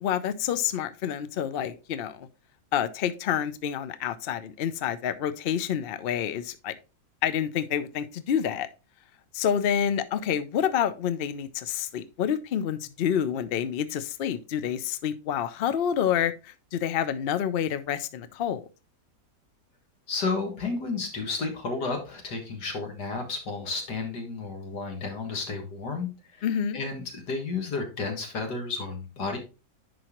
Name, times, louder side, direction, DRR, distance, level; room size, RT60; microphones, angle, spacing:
voice 1, 0.0-2.3 2.7-6.7 7.2-8.7 9.3-18.6 26.4-26.8, left 9 dB, 65° left, 0.5 m, -28 dB
voice 2, 20.1-26.4 26.7-29.4, left 4 dB, 85° left, 2.3 m, -32 dB
10.5 x 4.7 x 3.0 m
omnidirectional pair, 1.7 m